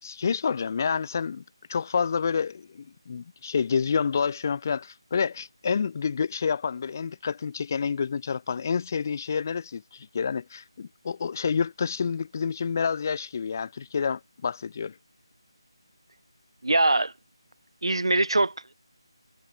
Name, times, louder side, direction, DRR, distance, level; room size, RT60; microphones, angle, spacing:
voice 1, 0.0-1.4 1.7-14.9, left 6 dB, 35° left, 4.3 m, -28 dB
voice 2, 16.6-17.1 17.8-18.7, right 2 dB, 75° right, 1.7 m, -23 dB
figure-of-eight pair, 160°, 3 cm